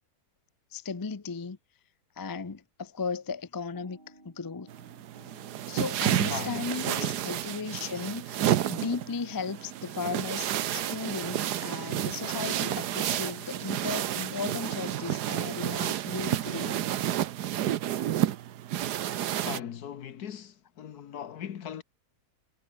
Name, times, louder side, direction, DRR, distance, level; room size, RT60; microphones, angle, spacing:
voice 1, 0.7-1.6 2.2-4.0 4.2-4.7 5.7-16.8, left 5 dB, 30° left, 0.4 m, -36 dB
sound 1, 3.7-15.0, right 1 dB, 30° right, 7.5 m, -56 dB
sound 2, 4.7-19.6, right 11 dB, 80° right, 1.4 m, -30 dB
voice 2, 6.3-7.2 19.4-21.8, left 9 dB, 70° left, 1.6 m, -39 dB
omnidirectional pair, 1.7 m